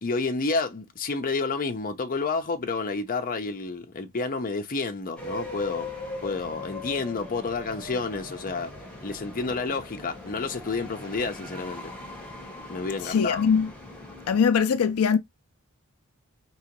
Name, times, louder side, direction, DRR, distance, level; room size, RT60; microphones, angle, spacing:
voice 1, 0.0-5.9 6.2-8.7 9.0-11.9 12.7-13.5, left 3 dB, 40° left, 0.6 m, -30 dB
sound 1, 5.2-14.4, left 2 dB, 5° left, 1.7 m, -40 dB
voice 2, 13.0-13.7 14.3-15.2, left 6 dB, 80° left, 0.4 m, -21 dB
4.8 x 3.0 x 3.0 m
head